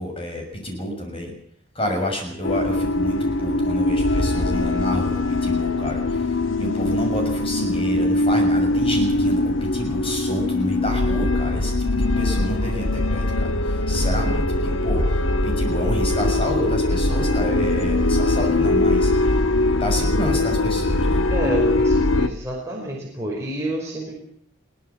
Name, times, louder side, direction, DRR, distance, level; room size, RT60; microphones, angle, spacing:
voice 1, 0.0-1.3 1.7-19.4 19.7-21.2, equal, 30° left, 2 dB, 6.5 m, -29 dB
sound 1, 2.4-22.3, left 2 dB, 75° left, 1.4 m, -21 dB
voice 2, 21.3-24.1, right 1 dB, 15° right, -3 dB, 5.3 m, -29 dB
22.0 x 17.5 x 7.2 m, 0.66 s
head